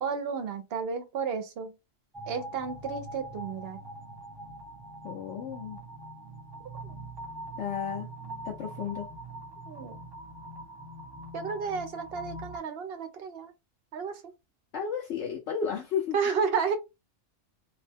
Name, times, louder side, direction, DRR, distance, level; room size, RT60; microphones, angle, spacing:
voice 1, 0.0-1.7 2.3-3.8 9.7-10.0 11.3-13.5 13.9-14.3 16.1-16.8, right 6 dB, 60° right, 0.8 m, -32 dB
sound 1, 2.1-12.6, right 1 dB, 25° right, 0.5 m, -43 dB
voice 2, 5.0-5.8 7.6-8.1 8.4-9.1 14.7-16.2, left 7 dB, 65° left, 0.9 m, -33 dB
2.8 x 2.1 x 3.3 m
omnidirectional pair, 1.3 m